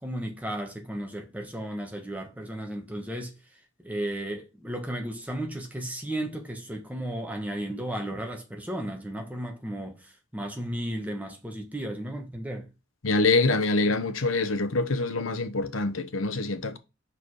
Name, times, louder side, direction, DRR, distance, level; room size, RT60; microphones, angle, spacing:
voice 1, 0.0-3.3 3.8-12.7, right 1 dB, 10° right, 1.3 m, -34 dB
voice 2, 13.0-16.8, left 3 dB, 90° left, 0.9 m, -25 dB
5.4 x 4.7 x 4.8 m
head